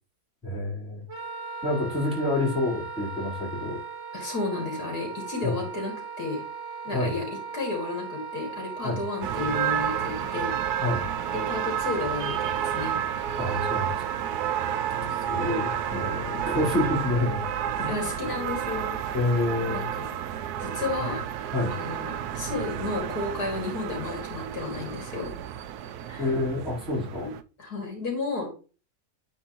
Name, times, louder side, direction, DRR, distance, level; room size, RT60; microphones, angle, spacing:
voice 1, 0.4-1.0 1.6-3.8 5.4-5.6 6.9-7.2 8.8-9.0 10.8-11.0 13.4-14.0 15.3-17.4 17.8-18.0 19.1-19.9 21.0-21.1 21.5-21.7 26.2-27.3, left 2 dB, 5° right, -7 dB, 4.0 m, -28 dB
Wind instrument woodwind instrument, 1.1-17.2, right 5 dB, 50° right, 1.3 m, -38 dB
voice 2, 4.1-6.4 6.8-7.2 7.5-10.5 11.3-13.0 15.3-15.6 17.9-19.0 19.7-21.2 21.7-25.3 26.1-26.3 27.6-28.5, left 3 dB, 80° left, 1 dB, 2.9 m, -32 dB
sound 1, 9.2-27.4, right 10 dB, 90° right, 1.1 m, -31 dB
9.3 x 4.5 x 3.0 m, 0.35 s
omnidirectional pair, 1.6 m